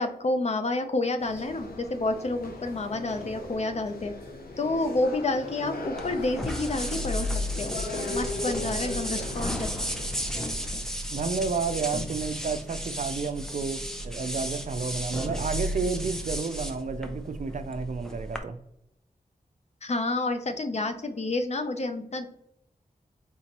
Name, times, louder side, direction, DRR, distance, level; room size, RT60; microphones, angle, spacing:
voice 1, 0.0-4.1 4.6-7.3 7.6-9.7 19.8-22.3, left 2 dB, 45° left, 7 dB, 0.6 m, -29 dB
sound 1, 1.2-10.7, left 2 dB, 80° left, 0.8 m, -39 dB
sound 2, 6.0-18.4, equal, 5° left, 0.7 m, -33 dB
voice 2, 11.1-18.6, right 5 dB, 55° right, 11 dB, 0.4 m, -31 dB
4.3 x 3.7 x 3.0 m, 0.78 s
wide cardioid pair, 70°, 15 cm